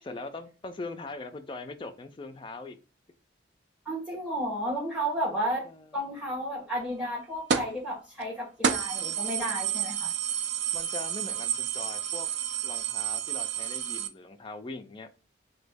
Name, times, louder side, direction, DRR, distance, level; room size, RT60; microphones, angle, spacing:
voice 1, 0.0-2.8 5.6-6.0 10.7-12.3 12.6-15.1, left 3 dB, 25° left, 7 dB, 0.3 m, -41 dB
voice 2, 3.8-5.6 5.9-10.1, right 1 dB, 5° right, -3 dB, 1.2 m, -32 dB
sound 1, 7.5-7.8 8.2-8.3 8.6-14.1, right 8 dB, 65° right, 0.4 m, -30 dB
3.0 x 2.2 x 3.3 m, 0.34 s
head